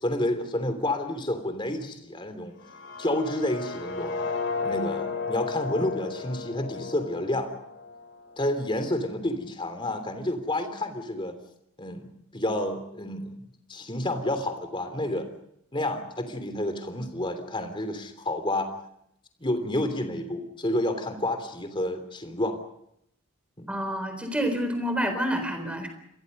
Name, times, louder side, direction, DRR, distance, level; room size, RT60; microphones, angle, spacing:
voice 1, 0.0-2.5 3.0-4.2 4.6-7.5 8.4-11.3 11.8-13.3 13.7-15.3 15.7-18.7 19.4-22.6 23.6-23.7, left 1 dB, 25° left, 7 dB, 3.1 m, -29 dB
sound 1, 2.6-8.5, left 4 dB, 55° left, 2.9 m, -34 dB
voice 2, 23.7-25.9, equal, 5° right, 7 dB, 3.9 m, -28 dB
28.5 x 23.0 x 5.4 m, 0.75 s
head